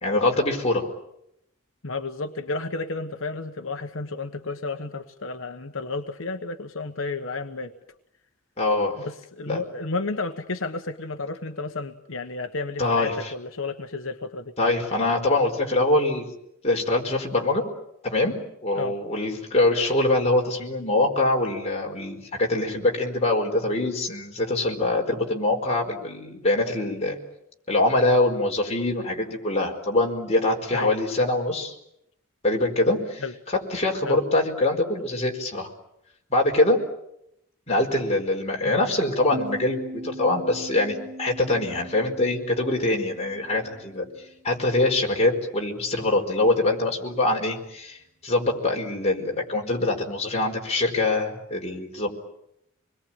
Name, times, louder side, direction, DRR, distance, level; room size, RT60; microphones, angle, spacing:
voice 1, 0.0-0.9 8.6-9.0 9.5-9.6 12.8-13.3 14.6-16.3 16.6-17.6 18.0-18.3 18.6-27.2 27.7-31.7 32.4-35.7 36.3-36.8 37.7-39.8 40.0-44.1 44.4-48.0 48.2-52.1, left 2 dB, 30° left, 1 dB, 4.7 m, -24 dB
voice 2, 1.8-7.7 9.0-14.5 18.8-18.9 30.7-30.9 33.2-33.3 34.0-34.2 38.6-38.8, left 3 dB, 70° left, 6 dB, 1.2 m, -32 dB
sound 1, 39.3-44.6, right 1 dB, 45° right, 2.4 m, -40 dB
26.5 x 21.5 x 8.9 m, 0.80 s
head